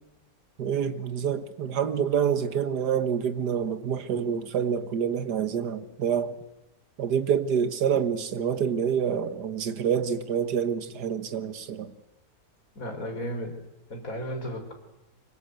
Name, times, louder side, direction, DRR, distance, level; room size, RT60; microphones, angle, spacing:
voice 1, 0.6-6.4 7.0-11.9, right 7 dB, 75° right, 1.9 m, -27 dB
voice 2, 12.7-13.5 13.9-14.7, equal, 55° left, 4.9 m, -34 dB
25.0 x 24.0 x 8.1 m
omnidirectional pair, 1.8 m